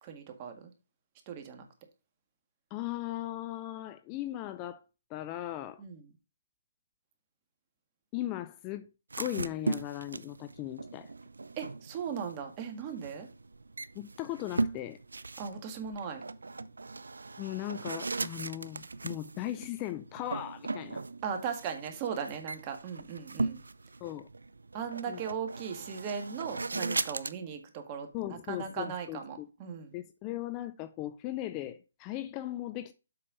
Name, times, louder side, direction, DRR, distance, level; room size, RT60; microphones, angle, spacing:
voice 1, 0.0-0.7 1.3-1.6 5.8-6.1 11.6-13.3 15.4-16.2 21.2-23.6 24.7-29.9, right 7 dB, 25° right, 1.8 m, -38 dB
voice 2, 2.7-4.8 5.1-5.8 8.1-8.9 9.2-11.1 13.9-15.0 17.4-21.0 24.0-24.3 25.1-25.2 28.1-29.5 29.9-32.9, left 14 dB, 20° left, 0.5 m, -38 dB
sound 1, 9.1-27.3, right 3 dB, 90° right, 0.6 m, -38 dB
7.8 x 5.6 x 3.9 m
hypercardioid pair, 155°, 0 cm